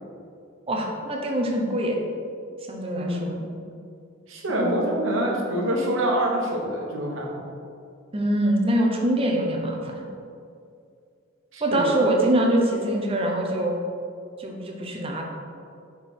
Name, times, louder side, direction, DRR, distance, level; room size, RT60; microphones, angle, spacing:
voice 1, 0.7-2.0 2.7-3.4 4.5-4.9 8.1-10.1 11.6-13.8 14.4-15.2, right 1 dB, 30° right, 0 dB, 0.7 m, -24 dB
voice 2, 3.0-3.5 4.3-7.4 11.5-12.1, right 1 dB, 80° right, -1 dB, 1.1 m, -26 dB
5.8 x 4.5 x 3.7 m, 2.4 s
head